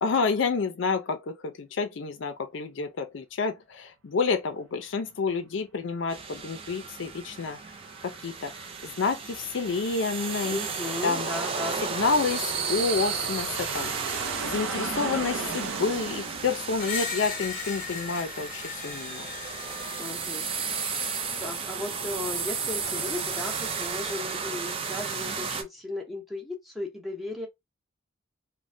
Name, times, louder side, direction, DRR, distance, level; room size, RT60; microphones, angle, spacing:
voice 1, 0.0-7.6 8.0-10.6 11.0-11.3 11.8-13.9 14.4-19.3, left 4 dB, 65° left, 0.4 m, -29 dB
sound 1, 6.1-25.6, right 5 dB, 30° right, 0.4 m, -34 dB
Aircraft, 7.3-18.5, right 4 dB, 85° right, 0.6 m, -38 dB
voice 2, 10.5-11.8 20.0-20.5 21.4-27.5, left 2 dB, ahead, 0.7 m, -36 dB
Screech, 16.8-20.8, left 6 dB, 40° left, 0.8 m, -37 dB
3.1 x 2.1 x 2.5 m
head